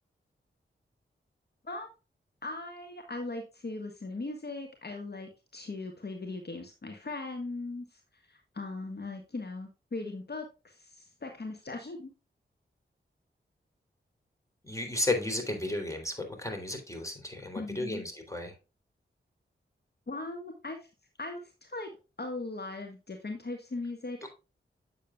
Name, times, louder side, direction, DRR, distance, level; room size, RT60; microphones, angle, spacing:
voice 1, 2.4-12.1 17.5-18.1 20.1-20.9 21.2-21.9 22.2-24.3, left 2 dB, 50° left, 4 dB, 1.7 m, -39 dB
voice 2, 14.6-18.5, left 2 dB, 15° left, 4 dB, 3.4 m, -33 dB
8.9 x 7.3 x 2.4 m, 0.28 s
cardioid pair, 40°, 21 cm